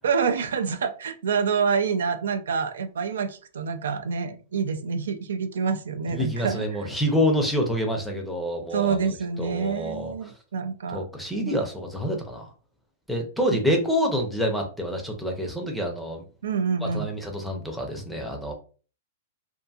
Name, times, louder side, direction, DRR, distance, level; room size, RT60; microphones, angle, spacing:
voice 1, 0.0-6.7 8.7-11.0 11.4-11.6 13.5-13.6 16.4-17.1, right 5 dB, 90° right, 7 dB, 0.4 m, -27 dB
voice 2, 6.1-10.1 10.9-12.5 13.1-16.2 16.8-18.5, equal, ahead, 1 dB, 0.5 m, -27 dB
2.6 x 2.5 x 2.3 m, 0.37 s
hypercardioid pair, 155°, 0 cm